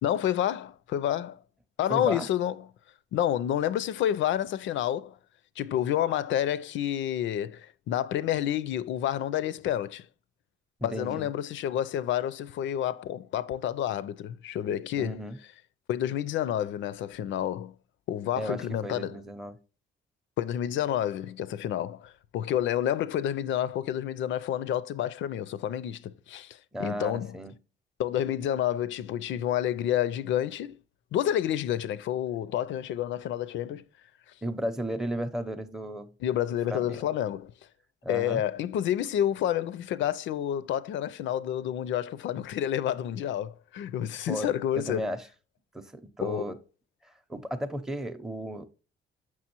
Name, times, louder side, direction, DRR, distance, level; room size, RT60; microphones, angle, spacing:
voice 1, 0.0-1.4 1.8-2.6 3.1-5.2 5.6-10.1 10.8-15.2 15.9-17.8 18.1-19.2 20.4-27.4 28.0-30.8 31.1-33.8 36.2-37.5 38.1-45.1 46.2-46.5, left 11 dB, 75° left, 0.4 m, -29 dB
voice 2, 1.9-2.3 10.8-11.3 15.0-15.4 18.4-19.6 26.7-27.5 34.4-36.1 36.7-37.1 38.0-38.4 44.3-44.5 44.8-45.3 45.7-46.6 47.0-48.7, equal, ahead, 0.6 m, -34 dB
6.1 x 5.9 x 2.9 m
cardioid pair, 90°, 20 cm